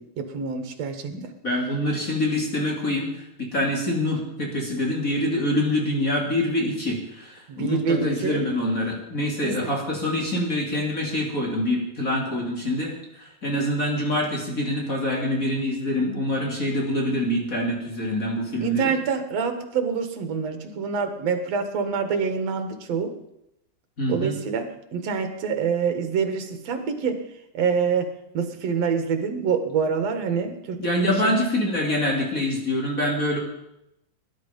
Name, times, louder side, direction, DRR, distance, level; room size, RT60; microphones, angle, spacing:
voice 1, 0.0-1.1 7.5-8.4 9.4-9.7 18.6-23.1 24.1-24.7 24.9-27.2 27.5-31.4, right 6 dB, 65° right, 7 dB, 2.7 m, -26 dB
voice 2, 1.0-3.1 3.4-18.9 24.0-24.3 30.8-33.4, left 1 dB, 30° left, -1 dB, 3.4 m, -25 dB
19.0 x 11.0 x 5.3 m, 0.84 s
omnidirectional pair, 3.3 m